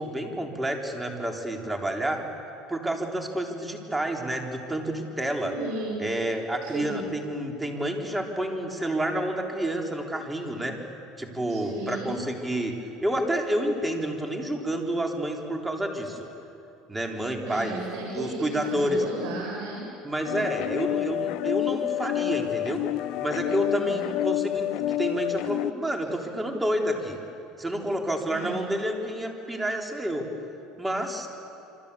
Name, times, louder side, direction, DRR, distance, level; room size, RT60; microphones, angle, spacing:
voice 1, 0.0-2.2 2.7-5.6 6.0-10.7 11.2-12.7 13.0-16.3 16.9-17.8 18.1-19.0 20.0-22.8 23.2-24.7 25.0-27.2 27.6-30.3 30.8-31.3, right 1 dB, 10° right, 2 dB, 3.8 m, -29 dB
voice 2, 5.4-6.0 6.6-7.1 11.5-12.2 17.4-19.8 23.6-24.1 28.3-28.7, right 3 dB, 75° right, -3 dB, 7.5 m, -35 dB
sound 1, 20.2-25.7, left 14 dB, 65° left, 0.5 m, -28 dB
27.5 x 25.5 x 8.4 m, 2.8 s
supercardioid pair, 115°, 0 cm